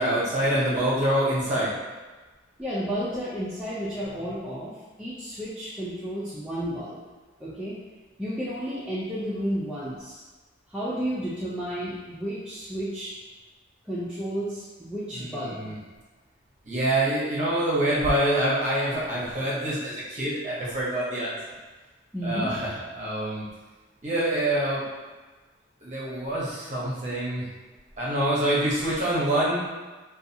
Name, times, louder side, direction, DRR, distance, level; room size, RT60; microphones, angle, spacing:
voice 1, 0.0-1.7 15.1-15.8 16.7-21.4 22.2-23.4 24.0-24.8 25.8-27.5 28.0-29.6, right 1 dB, 35° right, -7 dB, 0.7 m, -26 dB
voice 2, 2.6-4.7 5.0-7.0 7.4-7.8 8.2-10.2 10.7-13.1 13.8-15.7 22.1-22.5, equal, 5° right, -10 dB, 0.3 m, -32 dB
2.6 x 2.3 x 2.6 m, 1.3 s
head